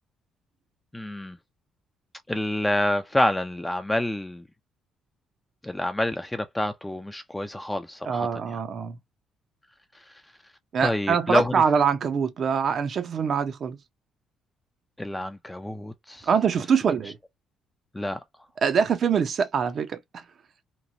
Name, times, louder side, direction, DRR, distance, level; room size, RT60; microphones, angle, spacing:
voice 1, 0.9-1.4 2.3-4.4 5.6-8.6 10.8-11.6 15.0-16.3 17.9-18.2, left 1 dB, 10° left, 0.3 m, -27 dB
voice 2, 8.1-9.0 10.7-13.8 16.2-17.2 18.6-20.2, right 6 dB, 50° right, 0.5 m, -24 dB
3.0 x 2.1 x 2.5 m
cardioid pair, 115°, 0 cm